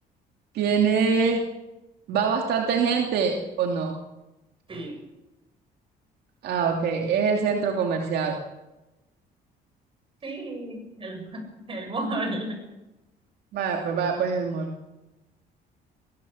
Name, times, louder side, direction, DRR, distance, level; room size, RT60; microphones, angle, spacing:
voice 1, 0.5-1.5 2.1-3.9 6.4-8.4 13.5-14.7, right 6 dB, 70° right, 2 dB, 2.7 m, -24 dB
voice 2, 10.2-12.6, right 2 dB, 30° right, 4 dB, 7.4 m, -33 dB
22.0 x 17.0 x 7.2 m, 1.0 s
cardioid pair, 110°, 17 cm